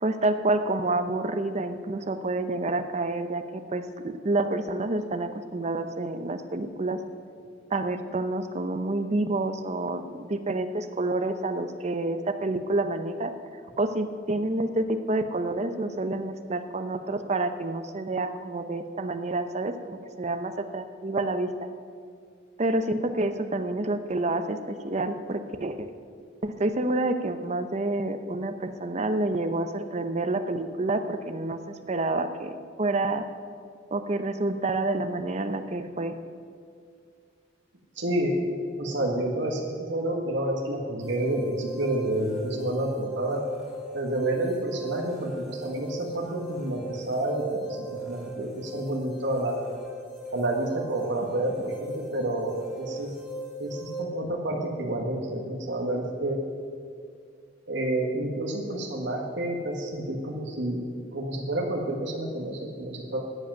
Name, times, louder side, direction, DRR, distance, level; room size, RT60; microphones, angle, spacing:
voice 1, 0.0-7.0 7.7-13.3 13.8-21.5 22.6-25.9 26.4-31.6 31.9-33.3 33.9-36.2, right 2 dB, 35° right, 9 dB, 0.7 m, -28 dB
voice 2, 38.0-38.5 38.8-43.4 43.9-49.6 50.3-53.1 53.6-56.4 57.7-60.8 61.1-63.2, right 1 dB, 70° right, 0 dB, 1.7 m, -29 dB
sound 1, 41.0-54.0, right 1 dB, ahead, 2.7 m, -38 dB
13.0 x 7.8 x 9.3 m, 2.2 s
head